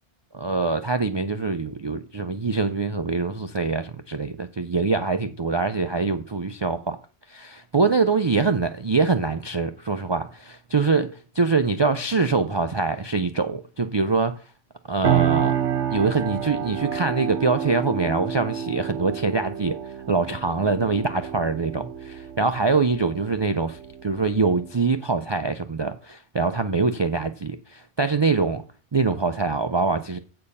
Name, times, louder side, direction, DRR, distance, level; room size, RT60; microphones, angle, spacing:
voice 1, 0.3-7.0 7.3-11.1 11.4-14.4 14.9-15.5 15.9-19.8 20.1-28.6 28.9-30.2, right 4 dB, 35° right, 0.4 m, -24 dB
sound 1, 15.0-24.8, right 9 dB, 90° right, 1.2 m, -29 dB
8.6 x 6.7 x 5.4 m
omnidirectional pair, 1.1 m